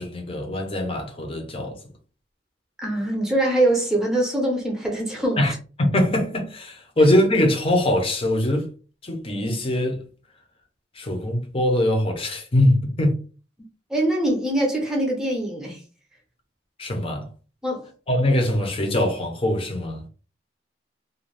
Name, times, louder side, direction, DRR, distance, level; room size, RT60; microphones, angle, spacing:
voice 1, 0.0-1.8 5.4-5.5 5.8-8.7 9.0-10.0 10.9-13.2 16.8-17.3 18.1-20.0, left 1 dB, 30° left, 0.7 m, -22 dB
voice 2, 2.8-5.4 13.9-15.8 17.6-17.9, right 1 dB, 5° right, 0.8 m, -23 dB
2.6 x 2.2 x 3.2 m
head